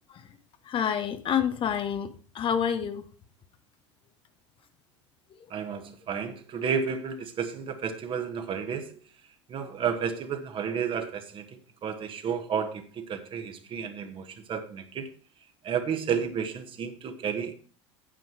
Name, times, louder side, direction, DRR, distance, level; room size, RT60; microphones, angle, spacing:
voice 1, 0.6-3.0, left 8 dB, 35° left, 10 dB, 1.0 m, -28 dB
voice 2, 5.5-8.9 9.5-15.1 15.6-17.5, right 7 dB, 35° right, 7 dB, 1.5 m, -32 dB
8.9 x 8.7 x 4.6 m, 0.39 s
figure-of-eight pair, 75°, 16 cm